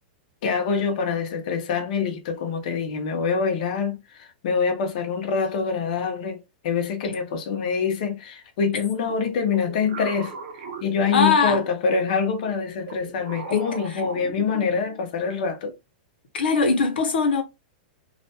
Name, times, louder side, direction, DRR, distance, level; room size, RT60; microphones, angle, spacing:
voice 1, 0.4-10.3 10.8-15.7, left 5 dB, 55° left, 0.7 m, -25 dB
sound 1, 9.0-11.8 12.4-15.1, right 5 dB, 60° right, 0.8 m, -38 dB
voice 2, 11.1-11.6 13.5-14.0 16.3-17.4, left 4 dB, 85° left, 0.9 m, -21 dB
2.4 x 2.2 x 2.7 m
supercardioid pair, 155°, 5 cm